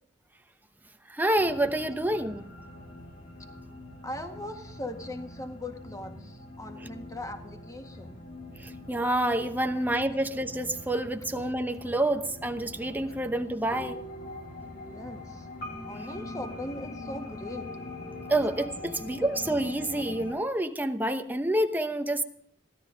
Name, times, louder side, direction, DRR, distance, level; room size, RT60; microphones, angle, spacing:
voice 1, 1.1-2.5 6.8-6.9 8.6-14.0 18.3-22.2, right 1 dB, 10° right, 0.9 m, -28 dB
sound 1, 1.3-20.3, left 2 dB, 55° left, 4.8 m, -43 dB
voice 2, 4.0-8.2 14.9-15.5 15.9-17.7, left 1 dB, 20° left, 1.8 m, -39 dB
16.5 x 13.0 x 5.2 m
head